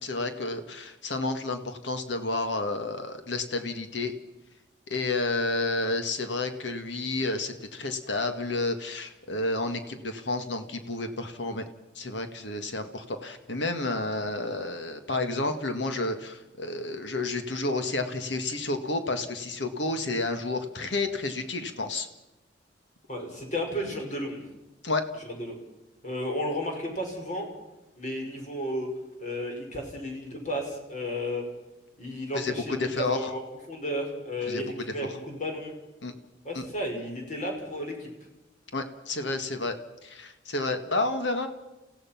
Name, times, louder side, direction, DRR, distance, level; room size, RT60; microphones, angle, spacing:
voice 1, 0.0-4.1 4.9-11.7 11.9-22.1 24.8-25.0 32.3-33.3 34.5-34.6 35.0-35.1 36.0-36.1 36.5-36.6 38.7-41.5, left 2 dB, 75° left, 7 dB, 1.9 m, -30 dB
voice 2, 23.1-24.4 25.3-25.6 26.0-27.5 28.0-28.9 29.2-31.4 32.0-33.4 33.7-35.7 36.4-38.1, equal, 40° left, 1 dB, 5.5 m, -33 dB
29.0 x 16.0 x 5.9 m, 0.99 s
head